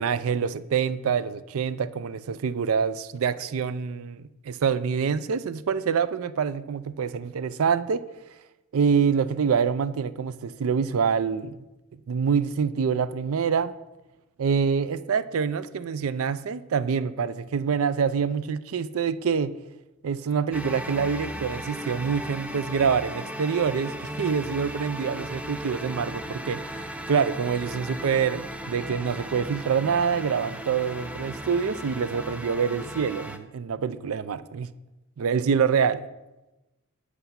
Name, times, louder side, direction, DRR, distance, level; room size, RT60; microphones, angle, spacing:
voice 1, 0.0-8.0 8.7-11.6 12.1-13.7 14.4-19.5 20.0-34.7 35.2-36.0, right 6 dB, 65° right, 0.4 m, -26 dB
sound 1, 20.5-33.4, equal, 5° right, 0.4 m, -36 dB
8.1 x 7.9 x 5.7 m
head